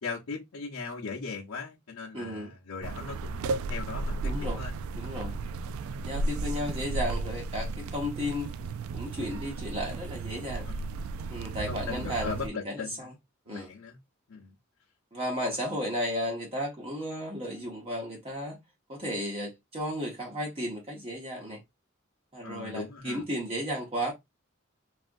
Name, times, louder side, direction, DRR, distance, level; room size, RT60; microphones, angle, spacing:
voice 1, 0.0-4.7 10.7-10.9 11.7-13.1 13.5-14.0 14.3-14.5 22.4-23.2, left 4 dB, 75° left, 0.8 m, -38 dB
voice 2, 2.1-2.5 4.2-4.7 4.9-5.4 6.0-8.5 8.9-10.7 11.3-13.1 13.5-13.7 15.1-18.6 18.9-21.6 22.3-24.1, equal, 25° right, 0.8 m, -34 dB
sound 1, 2.8-12.5, right 3 dB, 80° right, 0.3 m, -34 dB
3.5 x 2.4 x 2.5 m
head